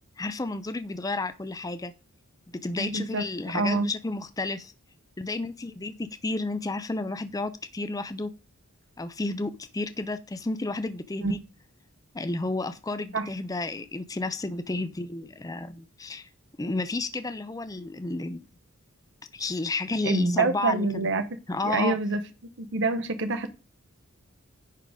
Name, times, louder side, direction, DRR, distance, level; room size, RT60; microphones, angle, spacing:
voice 1, 0.2-1.9 2.6-4.7 5.2-8.3 9.0-11.4 12.1-16.3 16.6-18.4 19.3-21.1 21.5-22.0, left 2 dB, 15° left, 0.4 m, -31 dB
voice 2, 2.8-3.2 3.5-3.9 11.2-11.3 13.1-13.3 20.0-21.2 21.6-22.2 22.6-23.5, right 3 dB, 55° right, 0.9 m, -26 dB
10.0 x 3.8 x 4.8 m
head